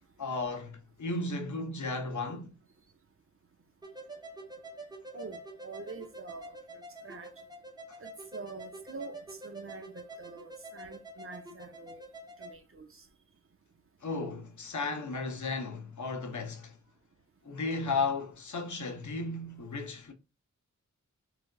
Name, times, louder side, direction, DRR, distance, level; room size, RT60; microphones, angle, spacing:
voice 1, 0.2-2.5 7.9-8.0 14.0-16.8 17.4-20.1, left 3 dB, 65° left, 0.6 m, -34 dB
sound 1, 3.8-12.5, right 2 dB, 15° right, 0.8 m, -47 dB
voice 2, 5.1-7.3 8.0-12.0 12.4-13.0, right 4 dB, 45° right, 0.6 m, -46 dB
3.2 x 2.4 x 2.2 m
cardioid pair, 40°, 32 cm